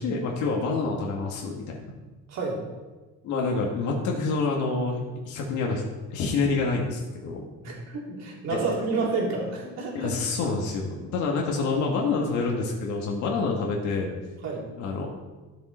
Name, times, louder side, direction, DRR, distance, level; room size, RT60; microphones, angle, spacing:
voice 1, 0.0-1.9 3.2-5.8 6.1-7.5 8.5-8.6 9.9-14.1 14.8-15.1, left 4 dB, 80° left, -1 dB, 1.9 m, -27 dB
voice 2, 2.3-2.6 7.6-10.1 14.4-14.6, right 3 dB, 65° right, -3 dB, 3.5 m, -29 dB
14.0 x 7.0 x 4.4 m, 1.2 s
cardioid pair, 130°, 29 cm